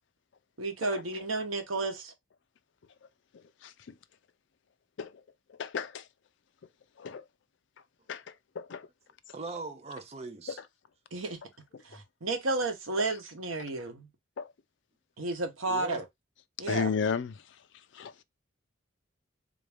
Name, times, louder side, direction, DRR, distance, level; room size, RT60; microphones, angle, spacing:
voice 1, 0.6-2.1 11.1-11.4 11.8-14.1 15.2-16.0 16.6-16.9, right 2 dB, 90° right, 1.0 m, -32 dB
voice 2, 3.6-3.9 5.0-5.1 5.5-6.0 7.0-7.2 8.1-8.2 8.6-8.9 14.4-14.5 16.7-17.3 17.9-18.2, left 6 dB, 65° left, 0.4 m, -33 dB
voice 3, 9.3-10.6 15.7-16.0, right 3 dB, 30° right, 0.5 m, -40 dB
3.7 x 2.6 x 3.3 m
head